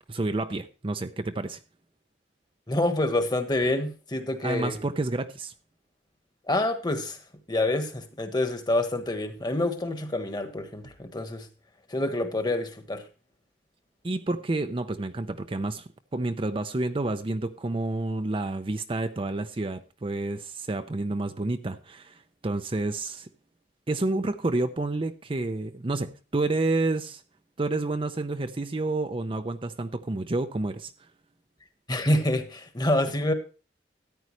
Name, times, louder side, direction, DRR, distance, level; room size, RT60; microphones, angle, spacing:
voice 1, 0.1-1.6 4.4-5.5 14.0-23.3 23.9-27.2 27.6-30.9, right 2 dB, 30° right, 0.6 m, -29 dB
voice 2, 2.7-4.8 6.5-7.2 7.5-11.5 11.9-13.0 31.9-33.3, left 1 dB, 25° left, 1.3 m, -27 dB
13.5 x 9.5 x 3.1 m
head